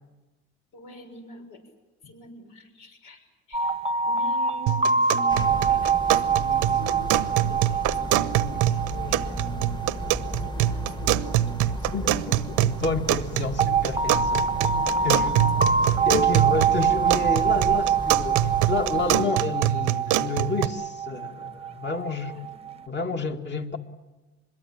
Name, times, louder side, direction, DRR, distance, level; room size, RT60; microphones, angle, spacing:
voice 1, 0.7-1.6 2.0-3.2 3.5-3.7 4.1-12.3 14.6-16.2 22.2-22.7 23.0-23.1, left 1 dB, 80° left, 5 dB, 6.4 m, -45 dB
sound 1, 3.5-12.3 13.6-22.7, right 6 dB, 20° right, 0.9 m, -25 dB
sound 2, 4.7-20.7, right 15 dB, 90° right, 0.9 m, -26 dB
sound 3, 5.3-19.3, left 1 dB, 15° left, 1.4 m, -35 dB
voice 2, 11.9-14.4 15.0-15.3 16.1-22.4 22.9-23.8, left 3 dB, 35° left, 4 dB, 2.3 m, -29 dB
25.0 x 22.0 x 8.8 m, 1.1 s
cardioid pair, 115°, 30 cm